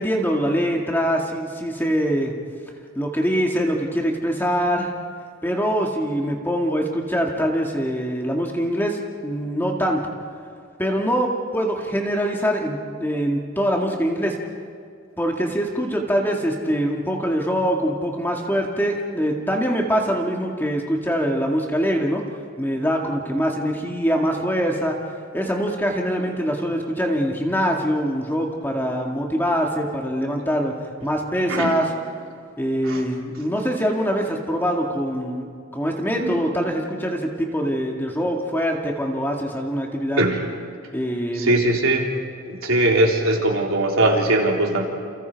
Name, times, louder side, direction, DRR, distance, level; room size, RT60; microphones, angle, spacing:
voice 1, 0.0-2.3 3.0-4.9 5.4-10.1 10.8-14.4 15.2-22.2 22.6-25.0 25.3-30.7 31.0-31.9 32.6-40.2 40.9-41.6, equal, 10° left, 0 dB, 2.0 m, -23 dB
voice 2, 41.4-42.1 42.5-44.8, right 1 dB, 70° right, 0 dB, 3.6 m, -20 dB
29.0 x 29.0 x 4.7 m, 2.2 s
head